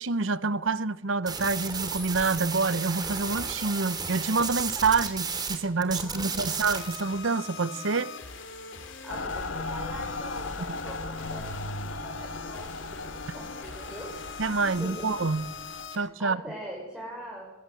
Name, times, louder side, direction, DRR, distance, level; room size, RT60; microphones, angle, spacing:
voice 1, 0.0-8.1 10.7-10.8 14.4-15.5 15.9-16.4, right 4 dB, 75° right, 0.9 m, -27 dB
sound 1, 1.3-5.6 5.8-7.0, right 5 dB, 20° right, 3.0 m, -33 dB
voice 2, 5.9-6.6 9.0-11.5 11.8-12.9 13.3-14.1 14.7-15.1 16.2-17.4, equal, 5° right, 5.9 m, -42 dB
sound 2, 6.6-16.0, left 5 dB, 65° left, 3.2 m, -43 dB
Mechanical fan, 9.1-15.9, left 2 dB, 85° left, 1.7 m, -37 dB
23.0 x 22.0 x 7.9 m
head